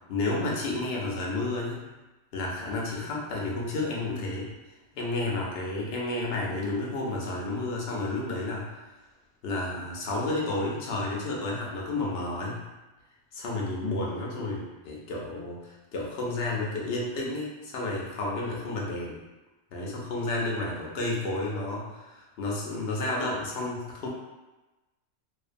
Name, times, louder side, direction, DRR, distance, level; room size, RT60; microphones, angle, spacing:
voice 1, 0.1-1.8 2.3-4.5 4.9-8.7 9.4-12.6 13.3-19.2 19.7-24.1, left 2 dB, 60° left, -3 dB, 0.7 m, -31 dB
2.4 x 2.1 x 2.5 m, 1.1 s
omnidirectional pair, 1.3 m